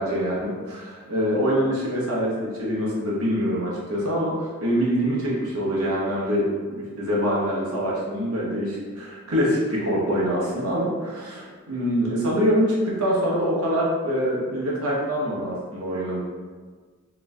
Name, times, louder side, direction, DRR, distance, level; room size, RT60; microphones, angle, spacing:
voice 1, 0.0-6.5 6.8-16.2, equal, 85° right, -5 dB, 0.9 m, -25 dB
3.0 x 2.1 x 3.5 m, 1.5 s
head